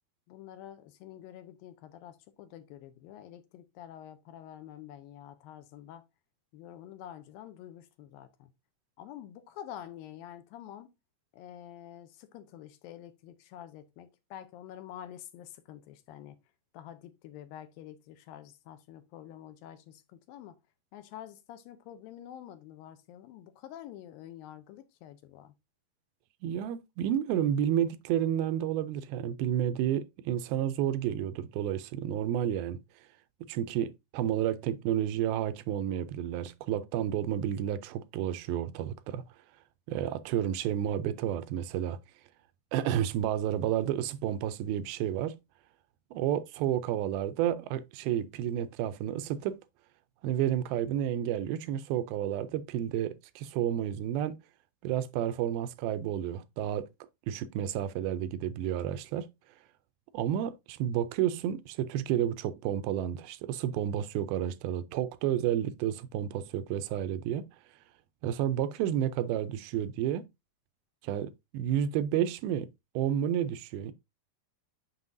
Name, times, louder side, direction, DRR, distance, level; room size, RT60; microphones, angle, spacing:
voice 1, 0.3-6.0 6.5-8.5 9.0-10.9 11.3-16.4 16.7-20.6 20.9-25.5, left 11 dB, 80° left, 2.3 m, -48 dB
voice 2, 26.4-32.8 33.5-39.2 39.9-42.0 42.7-45.4 46.1-49.6 50.2-54.4 54.8-56.9 57.3-59.3 60.1-67.5 68.2-70.3 71.0-72.7 73.0-73.9, right 10 dB, 85° right, 2.4 m, -31 dB
7.3 x 6.0 x 2.6 m
omnidirectional pair, 4.3 m